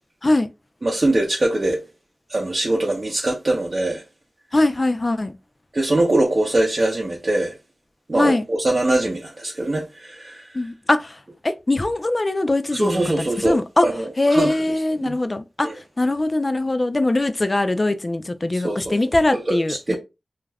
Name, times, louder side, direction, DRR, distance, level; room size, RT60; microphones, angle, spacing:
voice 1, 0.8-1.8 2.3-4.0 5.7-7.5 8.1-10.6 12.7-13.6 13.8-14.7 15.0-15.2 15.6-15.7 18.5-19.0 19.3-20.0, right 1 dB, 50° right, 0.6 m, -22 dB
voice 2, 4.5-5.3 8.2-8.4 10.5-11.2 11.4-13.9 14.2-15.7 16.0-20.0, left 2 dB, 40° left, 0.3 m, -21 dB
2.4 x 2.1 x 3.2 m
wide cardioid pair, 65°, 0 cm